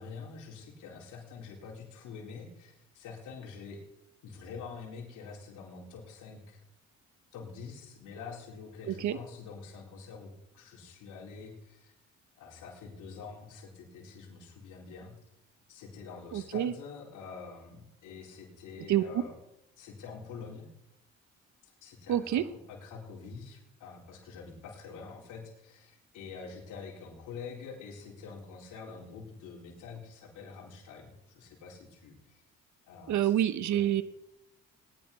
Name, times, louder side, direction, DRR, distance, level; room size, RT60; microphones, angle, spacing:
voice 1, 0.0-3.8 4.2-6.6 7.3-11.9 12.4-15.2 15.7-19.3 19.8-20.7 21.6-22.4 22.7-32.4 32.9-33.3 33.7-33.9, left 5 dB, 90° left, -1 dB, 4.0 m, -46 dB
voice 2, 8.9-9.2 16.3-16.7 18.9-19.0 22.1-22.4 33.1-34.0, right 11 dB, 70° right, 13 dB, 1.0 m, -27 dB
19.0 x 10.5 x 5.3 m, 0.85 s
cardioid pair, 90°, 30 cm